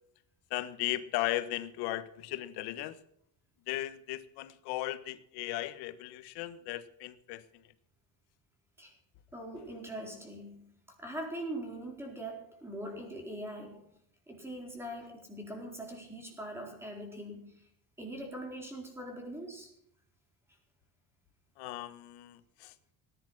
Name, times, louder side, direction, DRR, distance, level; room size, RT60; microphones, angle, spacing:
voice 1, 0.5-3.0 3.7-7.4 21.6-22.7, left 15 dB, 85° left, 13 dB, 1.4 m, -36 dB
voice 2, 9.3-13.9 14.3-17.6 18.0-19.7, right 1 dB, 5° right, 2 dB, 4.4 m, -42 dB
18.5 x 10.5 x 6.2 m, 0.72 s
cardioid pair, 155°, 39 cm